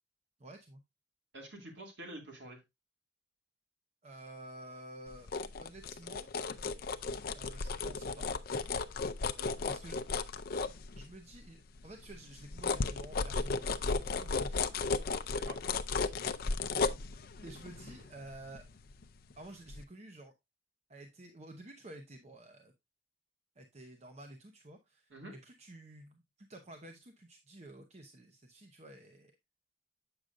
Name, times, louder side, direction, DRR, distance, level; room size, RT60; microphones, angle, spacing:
voice 1, 0.4-0.8 4.0-5.3 5.6-6.5 7.3-8.4 9.7-10.0 10.9-14.8 16.2-16.4 17.4-18.7 19.3-20.3 20.9-22.7 23.6-29.3, right 1 dB, 35° right, 4 dB, 0.8 m, -51 dB
voice 2, 1.3-2.6 9.4-9.8 15.3-15.8 25.1-25.4, right 1 dB, 70° right, 1 dB, 2.2 m, -48 dB
sound 1, 5.1-11.3 11.8-19.3 19.7-19.8, left 4 dB, 55° left, 0.5 m, -35 dB
8.0 x 6.3 x 2.5 m, 0.20 s
head